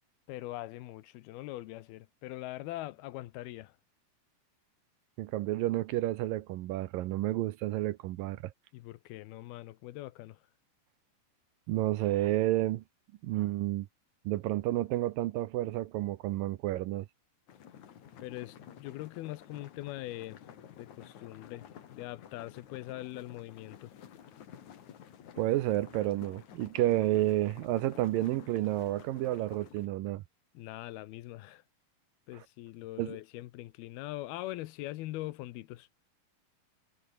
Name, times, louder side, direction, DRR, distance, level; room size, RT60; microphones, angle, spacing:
voice 1, 0.3-3.8 8.7-10.4 18.2-20.4 20.7-23.9 30.5-31.6 32.3-35.9, left 17 dB, 85° left, 2.8 m, -42 dB
voice 2, 5.2-8.5 11.7-12.8 13.2-13.9 14.3-17.1 25.4-30.2 33.0-33.2, right 15 dB, 75° right, 2.4 m, -30 dB
sound 1, 17.5-29.9, left 9 dB, 55° left, 3.1 m, -52 dB
omnidirectional pair, 4.4 m